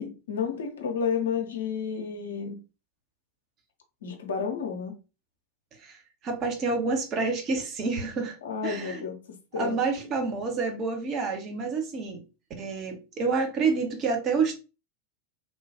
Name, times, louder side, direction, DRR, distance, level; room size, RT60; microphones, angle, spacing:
voice 1, 0.0-2.6 4.0-4.9 8.4-9.2 9.5-9.8, left 6 dB, 65° left, 0.6 m, -31 dB
voice 2, 5.8-8.4 8.6-9.0 9.6-12.2 12.6-14.5, right 4 dB, 30° right, 0.8 m, -28 dB
3.1 x 2.2 x 2.7 m
figure-of-eight pair, 90°, 0 cm